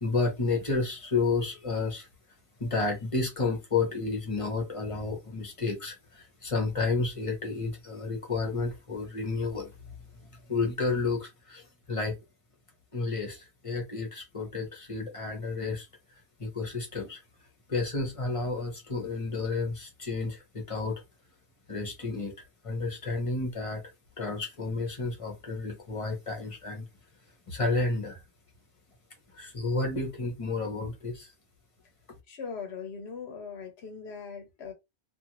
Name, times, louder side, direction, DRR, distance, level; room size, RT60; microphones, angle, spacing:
voice 1, 0.0-2.1 2.6-9.7 10.5-11.6 11.9-12.2 12.9-15.9 16.4-17.2 17.7-21.0 21.7-22.3 22.6-23.8 24.2-26.8 27.5-28.2 29.4-31.3, left 3 dB, 35° left, 0.9 m, -31 dB
voice 2, 32.3-34.7, left 6 dB, 75° left, 0.9 m, -40 dB
2.5 x 2.5 x 2.9 m
omnidirectional pair, 1.1 m